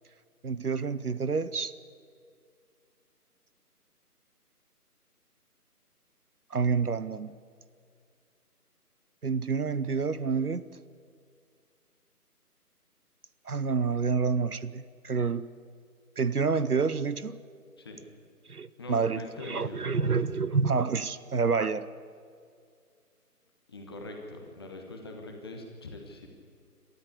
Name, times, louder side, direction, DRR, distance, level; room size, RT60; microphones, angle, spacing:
voice 1, 0.4-1.7 6.5-7.3 9.2-10.7 13.5-15.5 16.2-17.4 18.5-21.9, right 5 dB, 70° right, 0.9 m, -28 dB
voice 2, 18.8-20.2 23.7-26.3, left 2 dB, 15° left, 1.3 m, -43 dB
26.5 x 13.0 x 8.4 m
figure-of-eight pair, 155°, 47 cm